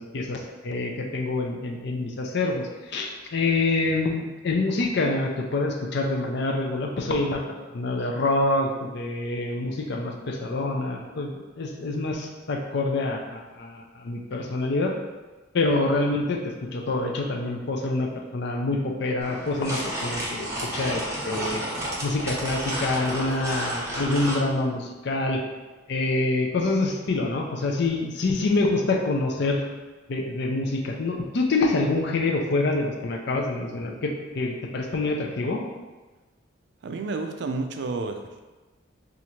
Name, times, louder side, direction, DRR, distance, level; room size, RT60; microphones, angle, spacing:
voice 1, 0.0-7.4 7.7-11.3 11.6-14.9 15.5-16.4 16.7-20.5 20.7-21.6 22.0-25.4 25.9-29.6 30.1-35.6, left 2 dB, 60° left, 2 dB, 0.5 m, -26 dB
sound 1, 19.2-24.4, right 1 dB, 15° right, 0.8 m, -31 dB
voice 2, 36.8-38.4, right 3 dB, 60° right, 5 dB, 0.4 m, -30 dB
2.9 x 2.5 x 4.3 m, 1.2 s
head